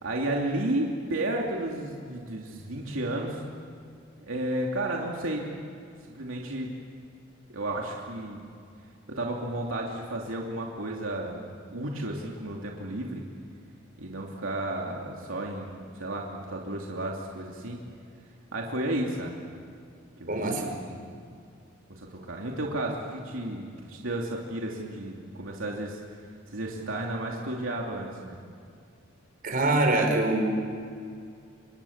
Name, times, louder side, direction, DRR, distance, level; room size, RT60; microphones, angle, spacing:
voice 1, 0.0-3.4 4.2-5.5 6.1-6.7 7.5-8.4 9.2-13.2 14.0-17.8 18.5-19.4 20.2-21.1 21.9-26.0 26.5-28.4, right 1 dB, 80° right, -1 dB, 2.9 m, -32 dB
voice 2, 20.3-20.6 29.4-30.5, right 2 dB, 45° right, 3 dB, 4.8 m, -24 dB
29.5 x 25.5 x 7.4 m, 2.3 s
head